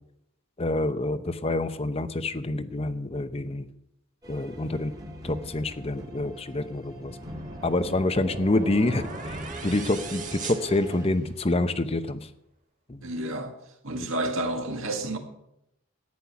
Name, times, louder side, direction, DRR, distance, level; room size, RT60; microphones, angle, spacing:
voice 1, 0.6-3.7 4.3-4.9 5.2-7.2 7.6-12.3 12.9-13.0 14.0-14.1, left 2 dB, 25° left, 0.7 m, -27 dB
sound 1, 4.2-11.1, right 1 dB, 20° right, 1.9 m, -42 dB
sound 2, 6.9-11.5, right 3 dB, 35° right, 1.7 m, -40 dB
voice 2, 13.0-13.6 13.8-15.2, right 1 dB, 65° right, 2.1 m, -30 dB
14.0 x 10.0 x 5.9 m
head